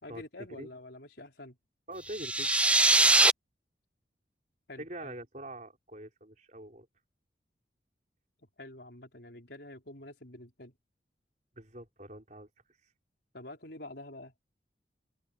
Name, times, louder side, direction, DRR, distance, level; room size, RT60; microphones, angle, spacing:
voice 1, 0.0-1.6 4.7-5.1 8.6-10.7 13.3-14.3, left 1 dB, 70° left, 4.6 m, -47 dB
voice 2, 1.9-2.7 4.8-6.9 11.6-12.5, right 1 dB, 40° right, 4.9 m, -44 dB
sound 1, 2.1-3.3, right 2 dB, 5° right, 0.6 m, -22 dB
head